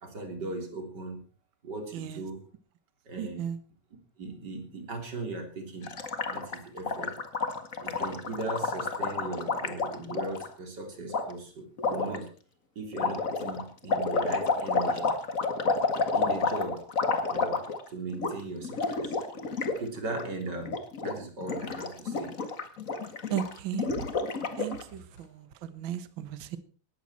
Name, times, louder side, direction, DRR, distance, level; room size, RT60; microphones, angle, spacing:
voice 1, 0.0-1.2 1.6-2.4 3.1-3.5 4.2-5.9 6.3-7.1 7.8-12.3 12.8-15.1 16.1-16.8 17.3-17.6 17.9-19.1 19.6-22.4, right 2 dB, 35° right, 4 dB, 3.9 m, -38 dB
voice 2, 1.9-2.2 3.1-3.6 18.2-18.3 23.3-24.1 24.6-26.6, right 10 dB, 50° right, 12 dB, 1.6 m, -36 dB
Gurgling, 5.8-10.5 11.1-11.2 11.8-12.2 12.9-17.9 18.1-18.3 18.6-19.8 20.0-20.2 20.6-21.1 21.4-24.8, left 4 dB, 35° left, 1.6 m, -30 dB
18.5 x 14.0 x 4.4 m, 0.40 s
omnidirectional pair, 3.5 m